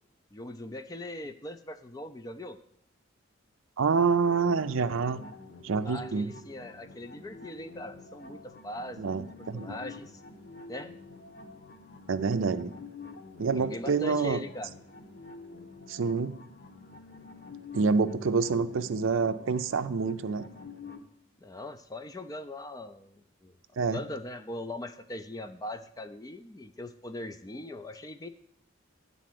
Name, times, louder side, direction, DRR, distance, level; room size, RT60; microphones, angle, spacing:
voice 1, 0.3-2.6 5.8-9.3 9.5-10.2 10.7-10.9 13.5-14.7 21.4-23.5 23.9-28.3, left 1 dB, 15° left, 10 dB, 0.4 m, -40 dB
voice 2, 3.8-5.2 5.6-6.3 9.0-9.7 12.1-12.7 13.4-14.4 15.9-16.3 17.7-20.5 23.8-24.0, right 5 dB, 75° right, 12 dB, 0.5 m, -27 dB
sound 1, 4.2-21.0, left 3 dB, 50° left, 0.9 m, -48 dB
10.0 x 4.1 x 7.6 m, 0.75 s
head